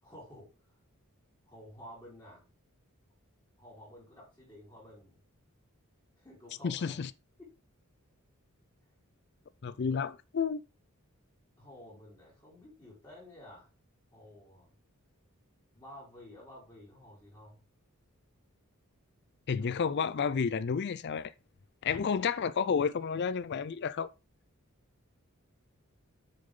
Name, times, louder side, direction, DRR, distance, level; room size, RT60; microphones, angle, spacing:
voice 1, 0.0-0.5 1.5-2.4 3.6-5.2 6.2-7.0 7.4-7.5 9.7-9.8 11.6-13.7 14.1-14.7 15.7-17.6 19.6-19.7, left 1 dB, 20° left, 4.3 m, -52 dB
voice 2, 6.6-7.1 9.6-10.6 19.5-21.3 21.8-24.1, left 6 dB, 50° left, 0.4 m, -31 dB
7.8 x 6.5 x 3.8 m
head